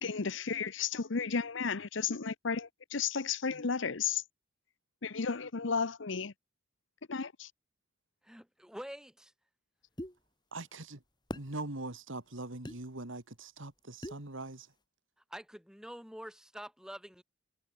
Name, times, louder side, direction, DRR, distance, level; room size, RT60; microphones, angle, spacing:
voice 1, 0.0-4.2 5.0-6.3 7.1-7.5, left 5 dB, 70° left, 0.8 m, -33 dB
voice 2, 8.2-9.3 15.3-17.2, equal, 5° right, 4.9 m, -46 dB
sound 1, 10.0-10.2 11.3-11.5 12.6-12.8 14.0-14.2, equal, 20° left, 6.9 m, -40 dB
voice 3, 10.5-11.0 11.3-14.7, right 2 dB, 75° right, 2.5 m, -42 dB
head